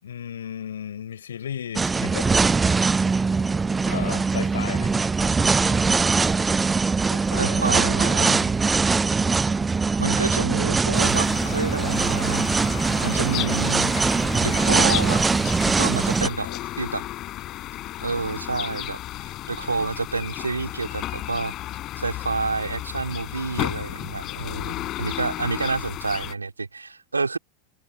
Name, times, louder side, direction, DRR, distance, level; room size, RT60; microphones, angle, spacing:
voice 1, 0.0-2.3 3.8-5.1 5.4-5.8 7.1-7.8 16.2-16.7 24.2-24.8, left 9 dB, 70° left, 5.6 m, -36 dB
sound 1, 1.8-16.3, right 4 dB, 15° right, 0.6 m, -22 dB
voice 2, 7.4-8.4 10.0-12.5 13.0-13.9 14.4-15.2 15.6-16.5 16.8-17.0 18.0-21.5 22.0-27.4, right 4 dB, 85° right, 2.5 m, -28 dB
sound 2, 10.9-26.3, left 15 dB, 40° left, 5.4 m, -33 dB
figure-of-eight pair, 85°, 0 cm